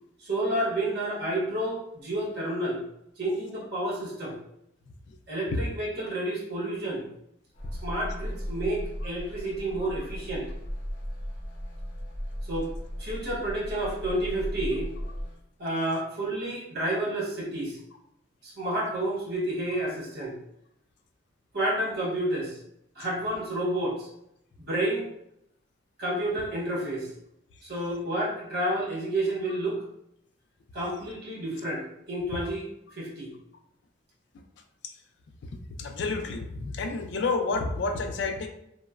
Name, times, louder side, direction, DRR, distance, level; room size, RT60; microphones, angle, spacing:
voice 1, 0.2-2.8 3.2-4.4 5.3-7.1 7.8-10.5 12.5-12.7 13.0-14.9 15.6-17.8 18.4-20.3 21.5-22.6 23.0-24.1 24.6-25.1 26.0-27.1 27.6-29.8 30.7-32.7 33.0-33.3, right 1 dB, 55° right, -5 dB, 0.9 m, -30 dB
sound 1, 7.5-15.4, equal, 40° left, 0.7 m, -36 dB
voice 2, 35.8-38.5, left 3 dB, 65° left, 6 dB, 0.3 m, -29 dB
2.9 x 2.0 x 2.3 m, 0.78 s
head